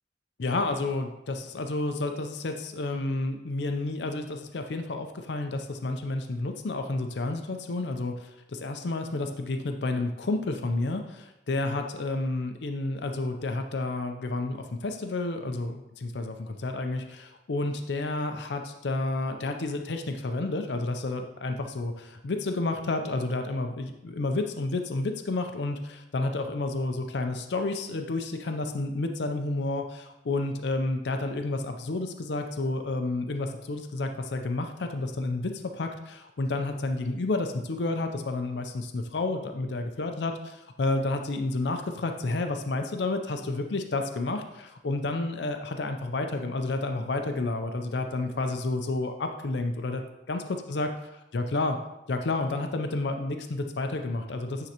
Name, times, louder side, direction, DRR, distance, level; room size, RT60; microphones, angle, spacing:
voice 1, 0.4-50.0 50.3-50.9 51.3-51.8 52.1-54.7, left 2 dB, 70° left, 5 dB, 0.5 m, -30 dB
9.1 x 3.8 x 2.9 m, 0.90 s
head